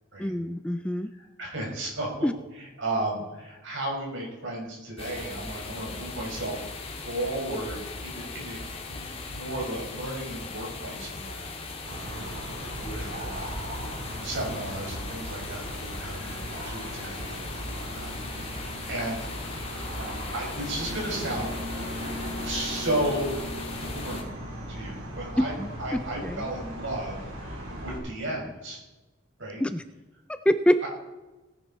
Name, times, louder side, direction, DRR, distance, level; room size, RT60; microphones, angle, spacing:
voice 1, 0.2-1.1 2.2-2.3 25.4-25.7 26.2-26.5 29.6-29.8 30.3-30.9, equal, 5° left, 10 dB, 0.4 m, -25 dB
voice 2, 1.2-2.1 2.6-6.6 7.0-8.6 8.9-13.7 14.2-19.3 20.3-21.5 22.4-23.4 23.8-24.3 24.7-25.5 25.8-28.8 29.4-29.6 30.8-30.9, right 1 dB, 65° right, -2 dB, 5.3 m, -34 dB
sound 1, 5.0-24.2, left 3 dB, 30° left, 2.0 m, -39 dB
sound 2, 11.8-28.0, equal, 90° right, 4.7 m, -37 dB
18.0 x 10.5 x 4.3 m, 1.1 s
head